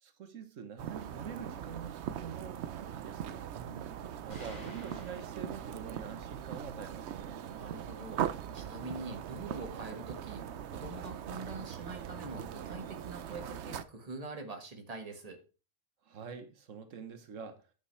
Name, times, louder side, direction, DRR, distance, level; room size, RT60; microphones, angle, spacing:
voice 1, 0.0-3.4 4.2-7.4 16.1-17.6, right 6 dB, 90° right, 1.5 m, -45 dB
sound 1, 0.8-13.8, right 9 dB, 65° right, 0.9 m, -40 dB
voice 2, 3.5-4.4 7.5-15.4, right 2 dB, 30° right, 1.7 m, -45 dB
sound 2, 4.3-6.3, left 2 dB, 35° left, 5.9 m, -52 dB
9.8 x 8.5 x 3.3 m
omnidirectional pair, 1.3 m